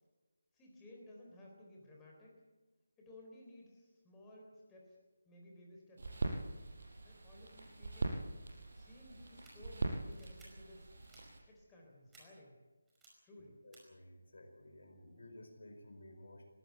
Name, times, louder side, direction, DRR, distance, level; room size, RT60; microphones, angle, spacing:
voice 1, 0.5-2.4 3.0-5.0 5.3-6.4 7.0-8.2 8.8-10.9 11.5-12.6 13.2-13.6, left 1 dB, 10° left, -2 dB, 3.7 m, -57 dB
sound 1, 6.0-11.4, right 2 dB, 50° right, 5.3 m, -42 dB
sound 2, 9.2-9.5 10.1-10.5 11.0-11.2 12.1-12.2 12.9-13.1 13.7-13.8, right 3 dB, 5° right, 5.3 m, -61 dB
voice 2, 13.4-16.5, left 1 dB, 60° left, 5 dB, 4.6 m, -55 dB
21.0 x 17.0 x 8.2 m, 1.2 s
figure-of-eight pair, 155°, 0 cm